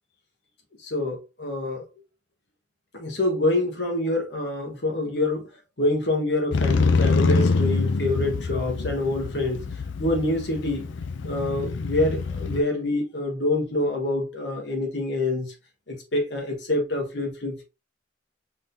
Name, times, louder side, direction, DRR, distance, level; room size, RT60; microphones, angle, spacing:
voice 1, 0.8-1.8 2.9-5.5 5.8-9.6 10.0-10.9 11.2-15.5 15.9-17.6, left 2 dB, 65° left, 1.5 m, -26 dB
Motorcycle, 6.5-12.6, left 4 dB, 90° left, 0.5 m, -25 dB
5.0 x 3.7 x 2.8 m
head